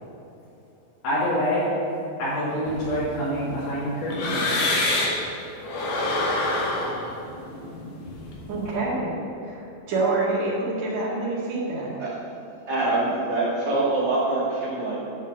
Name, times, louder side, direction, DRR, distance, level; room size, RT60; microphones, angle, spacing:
voice 1, 1.0-1.7 2.2-4.8, equal, 80° left, -11 dB, 4.5 m, -26 dB
sound 1, 2.7-5.3 5.6-8.7, left 2 dB, 60° left, 2.0 m, -27 dB
voice 2, 8.5-9.2 9.5-9.6 9.9-11.9, right 2 dB, 50° right, -6 dB, 3.1 m, -26 dB
voice 3, 12.7-15.0, right 2 dB, 35° right, -7 dB, 2.1 m, -24 dB
9.3 x 5.3 x 7.7 m, 2.8 s
omnidirectional pair, 4.3 m